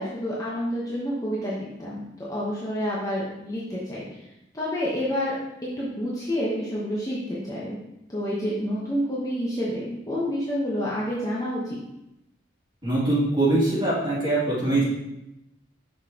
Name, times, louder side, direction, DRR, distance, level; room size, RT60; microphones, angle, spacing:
voice 1, 0.0-2.0 2.3-4.0 4.5-5.3 5.6-7.8 8.1-11.8, equal, 15° left, -7 dB, 0.9 m, -28 dB
voice 2, 12.8-14.8, right 2 dB, 25° right, -8 dB, 2.4 m, -22 dB
6.1 x 5.5 x 2.9 m, 0.88 s
head